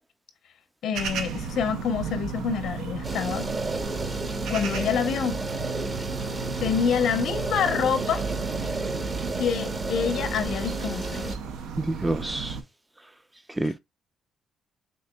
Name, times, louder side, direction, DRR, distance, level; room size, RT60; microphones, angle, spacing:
voice 1, 0.8-3.5 4.5-5.4 6.6-8.2 9.4-11.3 13.6-13.7, left 7 dB, 75° left, 0.6 m, -27 dB
sound 1, 0.9-12.6, right 5 dB, 90° right, 0.5 m, -34 dB
fridge compressor hum noises, 3.0-11.4, right 2 dB, 30° right, 0.7 m, -32 dB
voice 2, 11.8-12.6 13.6-13.8, right 2 dB, 10° right, 0.3 m, -27 dB
6.0 x 2.6 x 2.2 m
cardioid pair, 90°, 0 cm